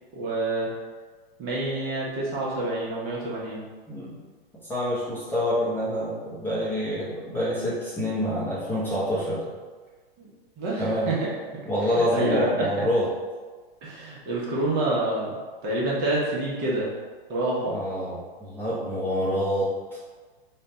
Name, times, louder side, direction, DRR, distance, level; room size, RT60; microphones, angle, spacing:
voice 1, 0.1-0.7 1.4-3.6 10.2-10.3 10.6-11.2 11.9-12.9 13.8-15.4 15.6-16.9 17.3-17.7, right 2 dB, 35° right, -5 dB, 1.1 m, -27 dB
voice 2, 3.9-4.2 4.7-9.4 10.8-11.1 11.7-13.1 17.6-19.7, equal, 5° left, -9 dB, 0.8 m, -27 dB
3.2 x 2.4 x 4.1 m, 1.4 s
hypercardioid pair, 115°, 30 cm